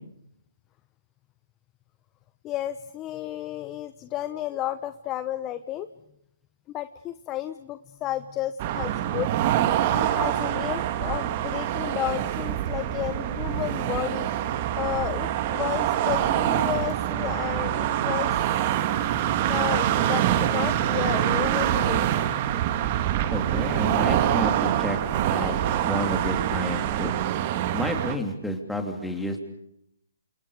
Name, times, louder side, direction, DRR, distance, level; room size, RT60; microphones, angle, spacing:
voice 1, 2.4-5.9 6.7-9.3 9.9-14.3 14.8-18.3 18.9-19.1 19.5-22.1, left 13 dB, 20° left, 12 dB, 0.9 m, -32 dB
sound 1, 8.6-28.2, right 11 dB, 35° right, 1.8 m, -25 dB
voice 2, 23.3-25.0 25.3-25.6 25.8-27.1 27.7-29.4, left 1 dB, ahead, 4 dB, 3.3 m, -30 dB
29.0 x 27.5 x 5.2 m, 0.75 s
hypercardioid pair, 150°, 0 cm